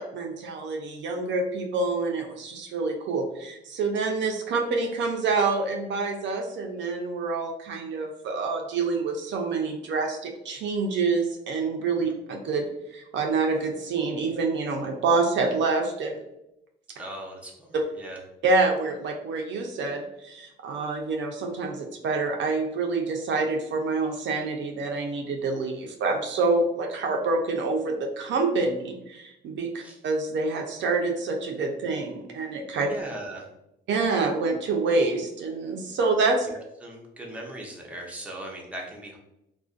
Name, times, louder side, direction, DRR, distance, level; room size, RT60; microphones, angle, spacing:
voice 1, 0.0-16.2 18.4-32.9 33.9-36.5, right 3 dB, 70° right, 2 dB, 0.5 m, -27 dB
voice 2, 17.0-18.2 29.8-30.0 32.9-33.5 36.5-39.2, right 1 dB, 5° right, -1 dB, 0.6 m, -39 dB
2.5 x 2.1 x 2.3 m, 0.84 s
cardioid pair, 90°, 20 cm